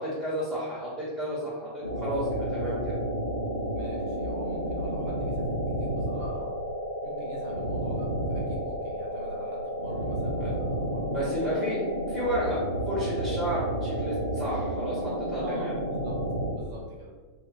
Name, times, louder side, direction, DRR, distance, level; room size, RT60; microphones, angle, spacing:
voice 1, 0.0-3.0 10.4-10.5 11.1-15.7, equal, 10° right, -8 dB, 1.4 m, -32 dB
sound 1, 1.8-16.5, right 1 dB, 80° right, 0.5 m, -31 dB
voice 2, 3.7-6.6 7.0-11.6 15.4-15.7 16.0-16.2 16.5-17.1, right 1 dB, 45° right, -2 dB, 0.8 m, -45 dB
3.0 x 2.6 x 4.0 m, 1.4 s
figure-of-eight pair, 90°, 0 cm